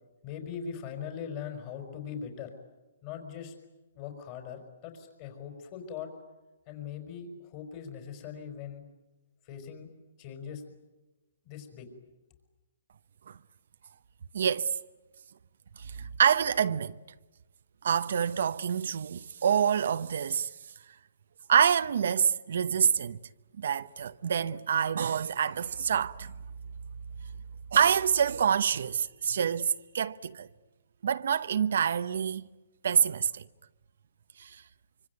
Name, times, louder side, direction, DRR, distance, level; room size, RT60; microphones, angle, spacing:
voice 1, 0.2-2.5 3.0-3.5 3.9-6.1 6.7-8.8 9.4-9.9 10.2-10.7 11.4-11.9, left 7 dB, 35° left, 4.7 m, -40 dB
voice 2, 14.3-14.8 15.8-17.0 17.8-20.5 21.5-23.2 23.6-26.3 27.7-30.5 31.0-32.5 32.8-33.4 34.4-34.6, right 8 dB, 65° right, 0.9 m, -27 dB
25.5 x 25.5 x 9.3 m
hypercardioid pair, 160°, 0 cm